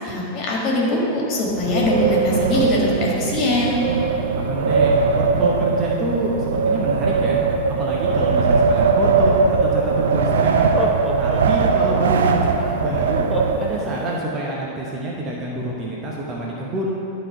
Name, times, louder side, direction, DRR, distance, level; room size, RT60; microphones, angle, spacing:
voice 1, 0.0-3.8, left 1 dB, 40° left, -3 dB, 1.8 m, -21 dB
Wind, 1.5-14.1, right 4 dB, 65° right, 0.4 m, -20 dB
voice 2, 4.3-7.4 7.8-10.7 11.2-13.3 13.6-17.0, right 1 dB, 30° right, -3 dB, 1.0 m, -27 dB
Laughter, 10.7-12.3 13.3-14.5, left 3 dB, 10° left, 0.9 m, -29 dB
10.5 x 4.3 x 4.7 m, 2.7 s
figure-of-eight pair, 90°, 0 cm